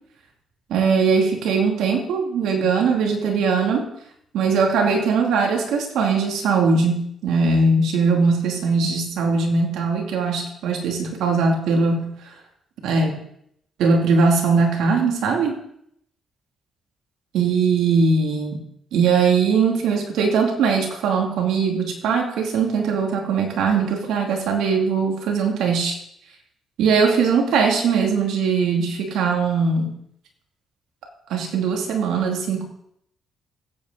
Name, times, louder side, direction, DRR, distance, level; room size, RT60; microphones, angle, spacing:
voice 1, 0.7-3.9 4.3-12.1 12.8-13.2 13.8-15.5 17.3-18.6 18.9-26.0 26.8-29.9 31.3-32.6, right 4 dB, 85° right, 1 dB, 2.4 m, -20 dB
15.5 x 8.3 x 3.9 m, 0.72 s
cardioid pair, 90°, 0 cm